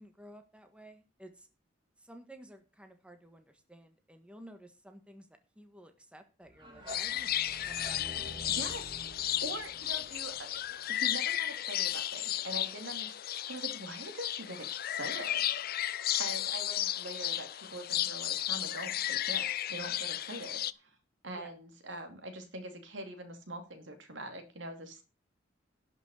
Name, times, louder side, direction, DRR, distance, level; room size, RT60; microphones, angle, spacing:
voice 1, 0.0-1.5 2.0-5.3 5.5-8.0 21.3-21.5, right 1 dB, 5° right, 6 dB, 1.5 m, -54 dB
sound 1, 6.5-11.4, right 1 dB, 25° right, 3.7 m, -48 dB
sound 2, 6.9-20.7, left 12 dB, 55° left, 0.5 m, -34 dB
voice 2, 8.5-8.9 9.4-15.5 16.2-20.9 21.2-25.0, right 1 dB, 85° right, 6 dB, 2.6 m, -43 dB
11.5 x 6.2 x 6.5 m, 0.31 s
head